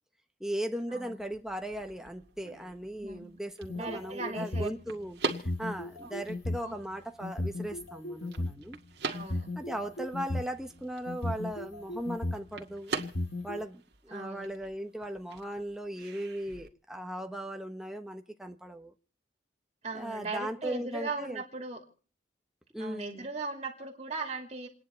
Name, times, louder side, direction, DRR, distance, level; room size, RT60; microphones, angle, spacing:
voice 1, 0.4-8.8 9.5-12.9 13.4-18.9 19.9-21.4 22.7-23.3, right 1 dB, 5° right, 1.0 m, -38 dB
sound 1, 1.2-16.7, right 3 dB, 60° right, 1.9 m, -43 dB
sound 2, 3.6-4.8 5.3-6.6 7.2-8.5 9.1-10.5 11.1-12.5 13.0-13.6, left 2 dB, 80° left, 1.4 m, -35 dB
voice 2, 3.7-4.7 6.6-6.7 9.1-9.5 14.1-14.5 19.8-21.8 22.8-24.7, right 3 dB, 35° right, 2.7 m, -38 dB
29.0 x 10.0 x 4.4 m
head